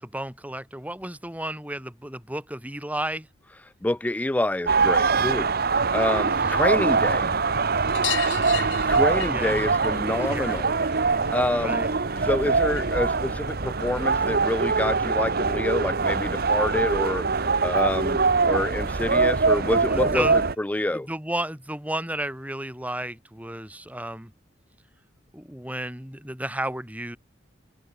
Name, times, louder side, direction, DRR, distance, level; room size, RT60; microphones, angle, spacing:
voice 1, 0.0-3.3 6.0-6.6 8.8-9.6 10.3-10.6 11.6-11.9 19.9-20.4 20.9-24.3 25.3-27.2, right 1 dB, 10° right, 4.0 m, -33 dB
voice 2, 3.8-5.5 5.9-7.3 8.9-10.7 11.3-11.9 12.2-18.2 18.5-21.1, left 1 dB, 10° left, 0.3 m, -27 dB
sound 1, 4.7-20.6, right 4 dB, 55° right, 1.1 m, -23 dB
sound 2, 7.0-16.6, left 2 dB, 60° left, 4.9 m, -49 dB
sound 3, 7.9-13.1 13.3-14.5 15.9-16.0 16.2-16.3 16.6-16.7 17.9-18.0 18.3-18.4 18.8-18.9 20.1-20.2 21.0-21.1, left 12 dB, 80° left, 1.1 m, -37 dB
head